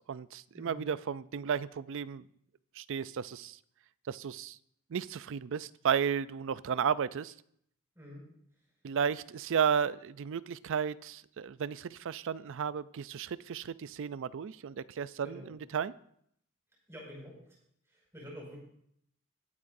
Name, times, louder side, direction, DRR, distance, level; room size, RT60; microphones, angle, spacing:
voice 1, 0.1-2.2 2.8-3.6 4.1-4.6 4.9-7.3 8.8-15.9, right 7 dB, 65° right, 17 dB, 0.4 m, -33 dB
voice 2, 8.0-8.3 15.2-15.5 16.9-17.4 18.1-18.6, equal, 15° right, -3 dB, 5.6 m, -47 dB
20.5 x 8.6 x 2.6 m, 0.69 s
head